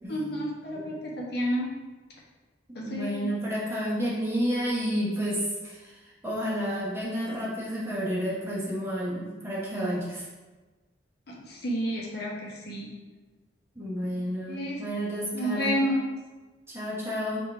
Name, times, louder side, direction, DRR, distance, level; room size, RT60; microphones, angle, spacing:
voice 1, 0.1-1.7 2.7-3.3 11.3-12.9 14.1-14.8 15.3-16.2, equal, 55° left, -3 dB, 0.8 m, -30 dB
voice 2, 2.8-10.2 13.8-15.8 16.7-17.4, equal, 15° right, -6 dB, 0.9 m, -30 dB
3.6 x 2.5 x 4.4 m, 1.3 s
head